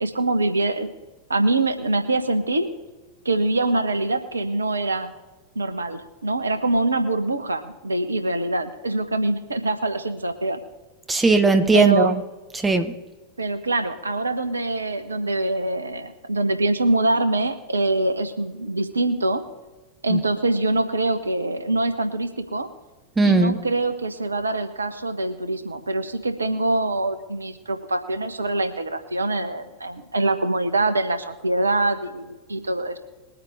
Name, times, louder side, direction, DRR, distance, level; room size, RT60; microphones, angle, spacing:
voice 1, 0.0-0.9 1.3-2.7 3.2-5.1 5.5-10.6 11.7-12.1 13.4-19.4 20.0-22.7 23.2-33.0, right 2 dB, 75° right, 9 dB, 1.1 m, -24 dB
voice 2, 11.1-12.2 12.5-12.9 20.1-20.2 23.2-23.6, right 3 dB, 10° right, 7 dB, 1.2 m, -18 dB
21.0 x 8.8 x 3.6 m, 1.2 s
figure-of-eight pair, 90°, 0 cm